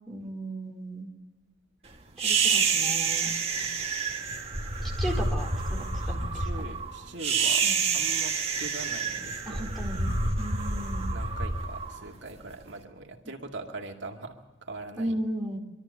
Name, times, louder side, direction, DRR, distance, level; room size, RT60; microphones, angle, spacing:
voice 1, 0.1-1.1 2.2-3.3 5.0-6.5 7.6-7.7 9.5-11.1 15.0-15.6, right 1 dB, ahead, -1 dB, 4.1 m, -35 dB
sound 1, 2.2-12.6, right 4 dB, 30° right, 2.0 m, -28 dB
voice 2, 6.0-9.8 11.1-15.1, right 2 dB, 70° right, 2 dB, 2.3 m, -42 dB
24.5 x 13.5 x 8.4 m, 1.1 s
head